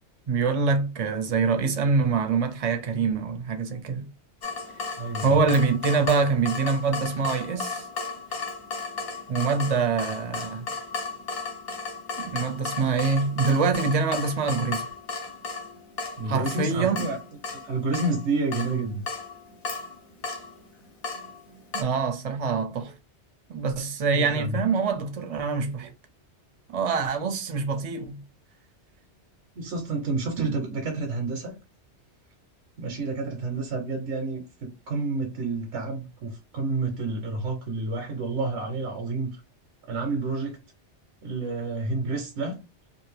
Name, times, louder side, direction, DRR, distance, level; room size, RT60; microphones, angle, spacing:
voice 1, 0.3-4.1 5.2-7.8 9.3-10.7 12.2-14.8 16.3-17.1 21.7-22.9 23.5-25.9 26.7-28.2 30.4-30.5, right 4 dB, 45° right, 0.5 m, -25 dB
Water tap faucet / Drip, 4.4-21.8, left 4 dB, 60° left, 1.0 m, -35 dB
voice 2, 5.0-5.4 16.2-17.2 17.6-19.0 24.1-24.6 29.5-31.5 32.8-39.3 39.9-40.6 41.2-42.6, right 3 dB, 85° right, 1.1 m, -29 dB
2.6 x 2.5 x 3.1 m
omnidirectional pair, 1.2 m